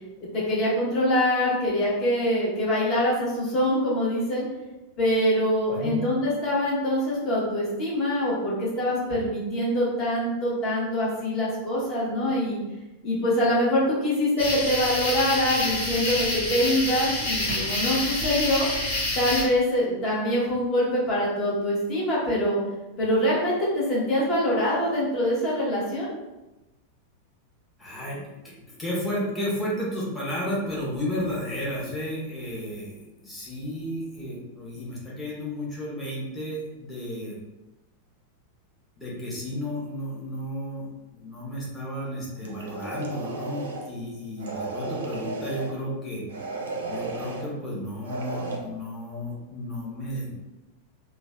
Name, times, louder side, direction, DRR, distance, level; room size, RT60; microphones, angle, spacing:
voice 1, 0.3-4.5 5.0-12.6 13.0-18.7 19.1-22.6 23.0-26.1, left 1 dB, 30° left, -5 dB, 1.0 m, -24 dB
voice 2, 5.7-6.0 27.8-28.5 28.8-37.4 39.0-40.9 41.1-46.2 46.9-50.4, equal, 10° left, -6 dB, 0.9 m, -33 dB
sound 1, 14.4-19.4, left 1 dB, 75° left, 1.1 m, -27 dB
sound 2, 42.4-43.9 44.4-45.7 46.3-47.5 48.0-48.6, right 3 dB, 65° right, 0.4 m, -34 dB
3.0 x 2.2 x 2.4 m, 1.0 s
figure-of-eight pair, 90°, 0 cm